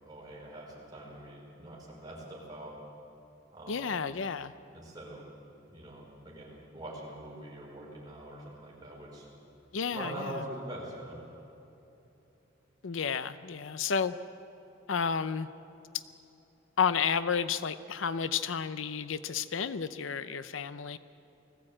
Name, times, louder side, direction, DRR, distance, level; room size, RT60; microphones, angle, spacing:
voice 1, 0.0-2.7 3.5-4.1 4.7-5.3 5.6-9.3 9.9-11.2, right 1 dB, 20° right, -4 dB, 5.2 m, -43 dB
voice 2, 3.7-4.5 9.7-10.3 12.8-14.2 14.9-15.5 16.8-21.0, left 6 dB, 80° left, 13 dB, 0.6 m, -31 dB
20.0 x 15.0 x 8.7 m, 3.0 s
head